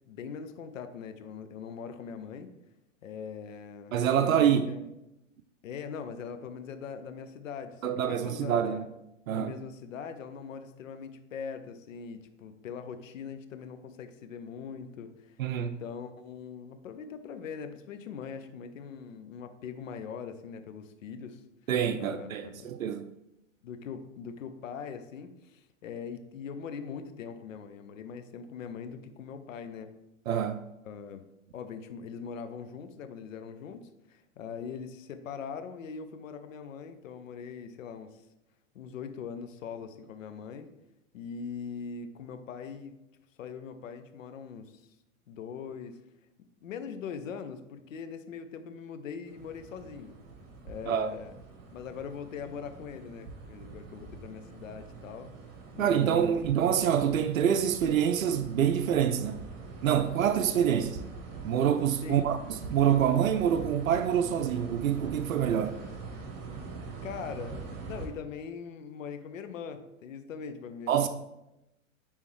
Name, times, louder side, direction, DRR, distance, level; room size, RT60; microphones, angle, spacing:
voice 1, 0.1-2.5 3.0-4.9 5.6-8.9 9.3-21.4 22.0-22.7 23.6-29.9 30.8-31.2 31.5-38.3 38.7-40.7 41.1-43.0 43.4-44.9 45.3-46.0 46.6-50.2 50.6-51.3 51.7-55.3 55.7-56.3 62.0-62.4 67.0-67.6 67.9-71.1, left 6 dB, 75° left, 0.8 m, -41 dB
voice 2, 3.9-4.7 7.8-8.9 9.3-9.5 15.4-15.7 21.7-23.1 30.3-30.6 50.9-51.1 55.8-59.4 59.8-61.0 61.4-65.8 70.9-71.1, right 9 dB, 85° right, 0.5 m, -26 dB
sound 1, 49.3-68.1, right 4 dB, 35° right, 1.6 m, -44 dB
9.6 x 3.6 x 3.2 m
hypercardioid pair, 100°, 39 cm